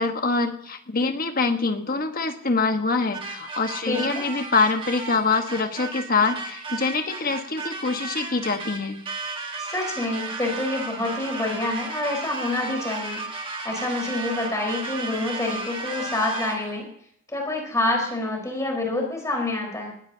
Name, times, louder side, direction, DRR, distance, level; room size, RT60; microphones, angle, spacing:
voice 1, 0.0-9.0, left 4 dB, 45° left, 5 dB, 1.5 m, -24 dB
sound 1, 3.1-16.8, right 3 dB, 25° right, 1.7 m, -34 dB
voice 2, 3.8-4.3 9.7-13.2 13.6-16.8 17.3-19.9, left 2 dB, 15° left, -1 dB, 4.7 m, -27 dB
20.0 x 16.0 x 2.9 m, 0.67 s
head